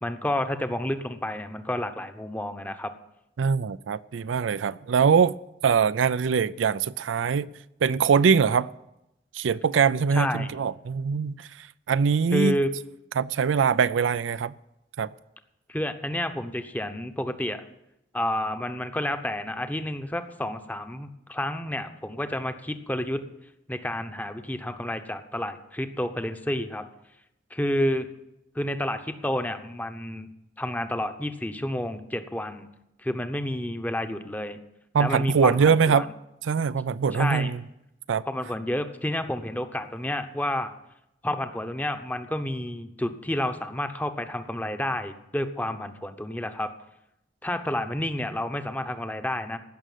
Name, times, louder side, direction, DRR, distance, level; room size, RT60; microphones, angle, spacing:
voice 1, 0.0-2.9 10.1-10.5 12.3-12.7 15.7-17.6 18.1-23.2 23.7-26.8 27.5-28.1 28.5-30.3 30.6-32.7 33.0-34.6 35.0-36.0 37.1-37.5 38.2-40.7 41.2-46.7 47.4-49.6, left 1 dB, 10° left, 0.8 m, -30 dB
voice 2, 3.4-5.4 5.6-7.5 7.8-8.7 9.3-11.5 11.9-12.6 13.2-14.5 15.0-15.1 34.9-36.1 36.4-37.6 38.1-38.2, right 6 dB, 85° right, 0.4 m, -22 dB
15.5 x 6.3 x 9.1 m
head